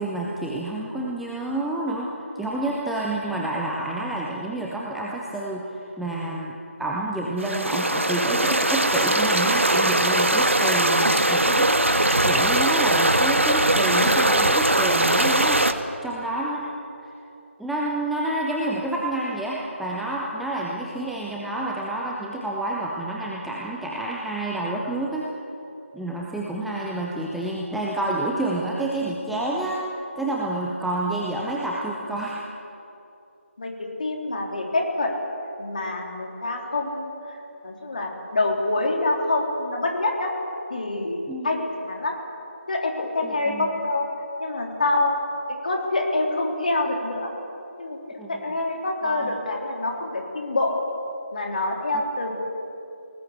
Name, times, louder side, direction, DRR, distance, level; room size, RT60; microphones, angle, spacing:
voice 1, 0.0-15.7 16.0-16.7 17.6-25.3 25.9-29.8 30.2-32.4 41.3-41.5 43.2-43.7 48.2-48.5 49.0-49.4, right 2 dB, ahead, -4 dB, 0.5 m, -29 dB
sound 1, 7.4-15.7, right 1 dB, 70° right, 1.7 m, -20 dB
voice 2, 33.6-35.1 35.6-37.1 37.6-40.3 40.7-41.2 41.4-42.1 42.7-44.1 44.4-45.2 45.6-47.3 47.8-48.0 48.3-50.8 51.3-52.3, left 2 dB, 40° left, 1 dB, 3.7 m, -26 dB
26.0 x 19.0 x 8.2 m, 2.8 s
figure-of-eight pair, 160°, 7 cm